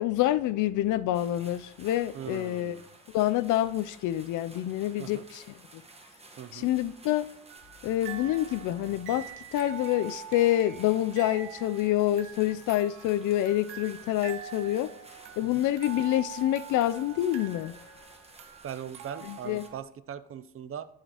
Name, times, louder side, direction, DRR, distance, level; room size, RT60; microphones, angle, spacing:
voice 1, 0.0-2.8 3.1-5.4 5.7-5.8 6.5-7.3 7.8-14.9 15.4-17.7 19.2-19.6, left 13 dB, 80° left, 0.5 m, -27 dB
sound 1, 1.1-19.7, right 2 dB, 20° right, 1.3 m, -53 dB
voice 2, 2.1-2.9 5.0-5.3 6.4-6.7 15.4-15.7 18.6-20.9, right 9 dB, 45° right, 0.5 m, -40 dB
sound 2, 7.5-19.8, right 8 dB, 90° right, 0.9 m, -45 dB
13.0 x 4.9 x 2.9 m
cardioid pair, 90°, 30 cm